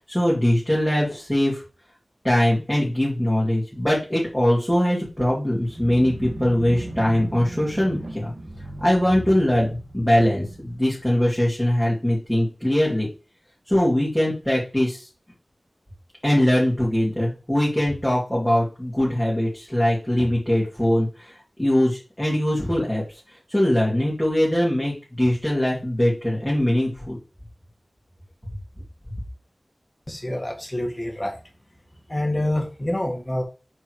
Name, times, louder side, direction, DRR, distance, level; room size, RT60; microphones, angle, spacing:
voice 1, 0.1-1.6 2.2-8.3 8.8-9.7 9.9-13.1 13.7-15.0 16.2-21.1 21.6-23.0 23.5-27.2, left 1 dB, 5° left, -6 dB, 2.8 m, -21 dB
sound 1, 5.6-11.6, right 1 dB, 45° right, 2.1 m, -37 dB
voice 2, 30.1-31.3 32.1-33.4, left 1 dB, 20° left, 2 dB, 1.8 m, -26 dB
6.2 x 4.5 x 4.9 m, 0.32 s
wide cardioid pair, 55°, 0 cm